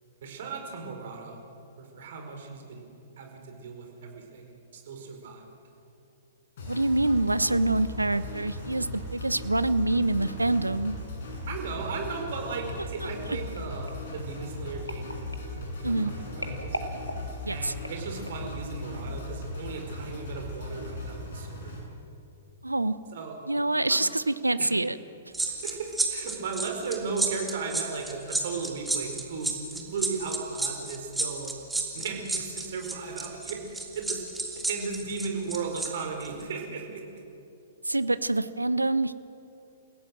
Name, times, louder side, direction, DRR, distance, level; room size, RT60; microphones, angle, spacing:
voice 1, 0.2-1.4 1.8-2.9 3.2-5.5 11.5-15.2 15.8-16.8 17.5-21.7 23.1-23.4 23.9-24.0 24.6-24.8 25.5-31.5 31.9-34.2 34.6-37.2, right 4 dB, 55° right, 3 dB, 4.9 m, -36 dB
sound 1, 6.6-21.8, left 2 dB, 55° left, 7.2 m, -38 dB
voice 2, 6.7-11.0 13.0-13.1 15.8-16.1 17.4-17.7 22.6-23.0 23.5-25.0 37.8-39.1, right 2 dB, 85° right, 15 dB, 0.8 m, -26 dB
sound 2, 13.6-18.6 19.2-19.4 19.7-19.8, equal, 90° left, 2.4 m, -41 dB
sound 3, 25.3-35.9 36.2-36.4, right 2 dB, 5° right, 2.9 m, -31 dB
29.0 x 16.5 x 7.6 m, 2.8 s
figure-of-eight pair, 110°, 0 cm